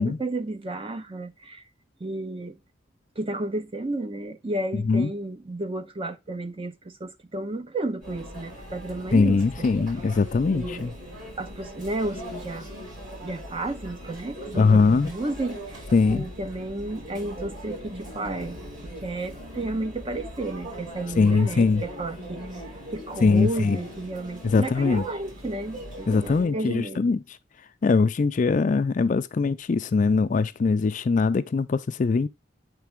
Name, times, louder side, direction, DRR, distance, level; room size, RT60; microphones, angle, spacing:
voice 1, 0.0-1.6 2.0-2.6 3.2-9.4 10.5-10.9 11.4-12.7 13.2-22.4 22.9-27.0, right 2 dB, 30° right, 0.7 m, -32 dB
voice 2, 4.7-5.1 9.1-10.9 14.5-15.1 15.9-16.3 21.2-21.8 23.2-23.8 24.4-25.0 26.1-27.2 27.8-32.3, left 4 dB, 40° left, 0.3 m, -21 dB
Conversation / Chatter / Crowd, 8.0-26.4, equal, 45° right, 4.2 m, -40 dB
8.4 x 3.3 x 3.5 m
head